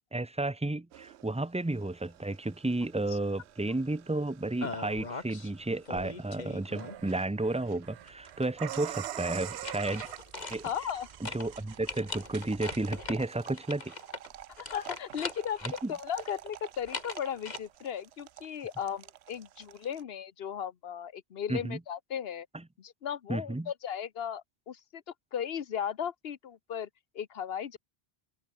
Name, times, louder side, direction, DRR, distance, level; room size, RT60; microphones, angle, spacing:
voice 1, 0.1-10.0 10.5-10.7 11.2-13.9 15.8-15.9 21.5-21.8 23.3-23.7, right 2 dB, 10° right, 0.4 m, -32 dB
sound 1, 0.9-20.0, right 12 dB, 85° right, 0.9 m, -46 dB
sound 2, 4.6-5.5 5.9-7.2 9.3-11.0 11.2-11.5 11.9-15.8 16.2-17.6, left 3 dB, 45° left, 1.9 m, -40 dB
sound 3, 7.4-13.3, right 5 dB, 45° right, 1.2 m, -54 dB
voice 2, 10.6-11.1 14.6-22.5 22.8-25.0 25.3-26.9 27.1-27.8, left 8 dB, 70° left, 1.1 m, -36 dB
open air
omnidirectional pair, 1.1 m